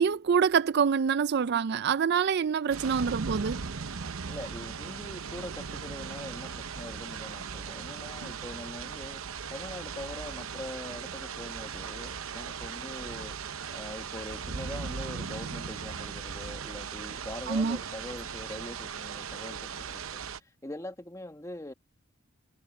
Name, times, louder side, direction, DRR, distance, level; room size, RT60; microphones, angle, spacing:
voice 1, 0.0-3.6 17.5-17.8, right 6 dB, 50° right, 0.4 m, -26 dB
sound 1, 2.7-20.4, right 6 dB, 70° right, 0.8 m, -38 dB
voice 2, 4.0-9.2 9.5-13.3 13.7-21.7, left 1 dB, 15° left, 1.5 m, -43 dB
head